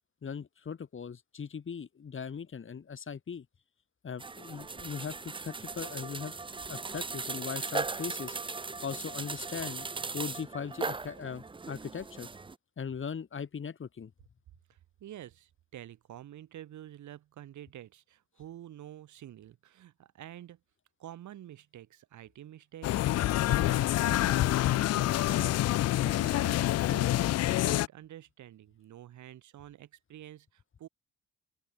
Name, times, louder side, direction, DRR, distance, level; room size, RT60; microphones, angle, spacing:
voice 1, 0.2-3.5 4.0-6.3 6.7-8.4 8.8-9.9 10.1-12.3 12.8-14.1, left 6 dB, 40° left, 3.5 m, -39 dB
sound 1, 4.2-12.6, right 4 dB, 15° right, 0.7 m, -38 dB
voice 2, 14.7-20.6 21.0-23.1 23.5-27.2 27.4-30.9, right 12 dB, 75° right, 3.6 m, -48 dB
sound 2, 22.8-27.9, left 15 dB, 55° left, 0.4 m, -27 dB
open air
cardioid pair, 90°, 30 cm